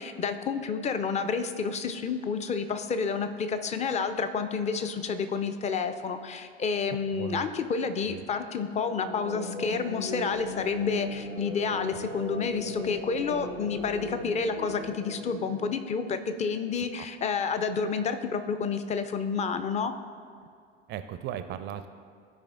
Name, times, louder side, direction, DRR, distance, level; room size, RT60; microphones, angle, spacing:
voice 1, 0.0-19.9, left 5 dB, 20° left, 9 dB, 0.5 m, -30 dB
voice 2, 6.9-7.5 8.1-8.2 16.9-17.1 20.9-21.9, right 10 dB, 35° right, 10 dB, 0.4 m, -37 dB
sound 1, 8.8-16.2, left 2 dB, 80° left, 0.8 m, -38 dB
13.5 x 4.9 x 2.5 m, 2.2 s
figure-of-eight pair, 70°, 31 cm